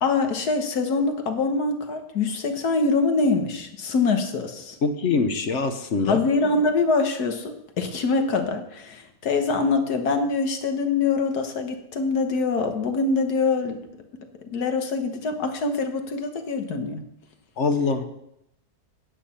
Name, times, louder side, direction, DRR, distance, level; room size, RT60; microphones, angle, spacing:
voice 1, 0.0-4.8 6.1-13.8 14.4-17.0, left 4 dB, 75° left, 6 dB, 1.7 m, -24 dB
voice 2, 4.8-6.2 17.6-18.0, left 4 dB, 55° left, 8 dB, 1.0 m, -23 dB
9.9 x 8.5 x 5.7 m, 0.79 s
omnidirectional pair, 1.7 m